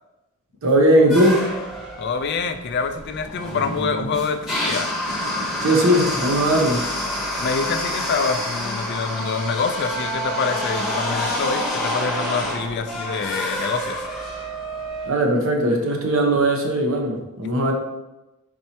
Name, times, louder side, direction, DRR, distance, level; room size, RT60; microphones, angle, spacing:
voice 1, 0.6-1.5 5.6-6.8 15.1-17.7, right 1 dB, 65° right, 2 dB, 0.8 m, -18 dB
sound 1, 1.1-15.1, left 1 dB, ahead, 0.9 m, -28 dB
voice 2, 2.0-4.9 7.4-14.0 17.4-17.5, left 5 dB, 50° left, 7 dB, 0.4 m, -26 dB
4.4 x 4.3 x 2.8 m, 0.99 s
head